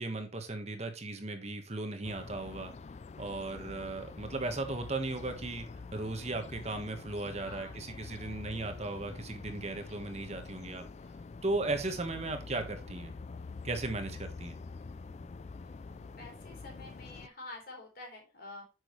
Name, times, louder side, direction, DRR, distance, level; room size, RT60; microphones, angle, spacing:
voice 1, 0.0-2.7 3.2-5.7 5.9-10.8 11.4-13.1 13.6-14.6, right 2 dB, 35° right, 6 dB, 1.3 m, -36 dB
sound 1, 2.0-17.3, left 4 dB, 40° left, 0.3 m, -46 dB
voice 2, 7.3-8.9 15.6-18.6, left 2 dB, 55° left, 0 dB, 3.8 m, -50 dB
9.9 x 6.3 x 3.1 m, 0.28 s
head